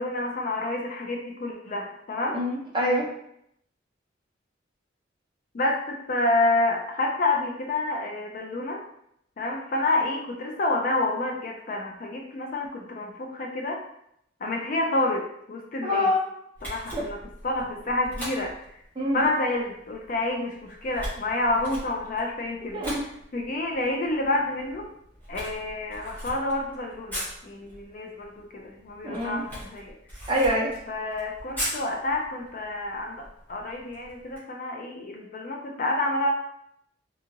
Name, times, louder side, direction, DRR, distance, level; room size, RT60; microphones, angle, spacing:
voice 1, 0.0-2.4 5.5-8.8 9.4-13.8 14.4-16.1 16.6-17.2 17.4-18.5 19.1-22.8 23.3-24.9 25.3-30.0 30.9-36.3, left 2 dB, 45° left, 0 dB, 0.4 m, -28 dB
voice 2, 2.3-3.1 15.8-16.2 16.9-17.0 19.0-19.2 22.7-23.0 29.0-29.4 30.3-30.7, equal, 25° right, -5 dB, 0.6 m, -25 dB
Camera, 16.5-34.4, equal, 10° left, 1.0 m, -41 dB
2.7 x 2.4 x 2.7 m, 0.74 s
head